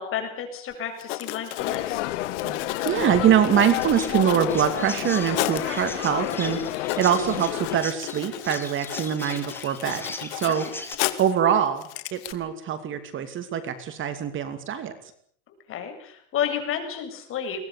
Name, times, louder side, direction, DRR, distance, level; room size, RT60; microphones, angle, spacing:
voice 1, 0.0-2.0 6.7-7.1 10.4-10.8 15.7-17.7, left 8 dB, 35° left, 5 dB, 7.7 m, -32 dB
Writing, 0.7-0.8 1.0-5.7 6.3-6.4 6.6-11.4 11.8-12.3, left 17 dB, 60° left, 2.4 m, -34 dB
sound 1, 1.6-7.8, left 16 dB, 80° left, 1.9 m, -30 dB
voice 2, 2.8-6.6 7.0-10.0 10.3-10.6 11.2-11.8 12.1-14.9, right 9 dB, 35° right, 9 dB, 2.7 m, -23 dB
Chirp tweet, 3.8-11.0, left 2 dB, 5° left, 3.1 m, -39 dB
23.0 x 19.5 x 8.4 m, 0.62 s
supercardioid pair, 145°, 36 cm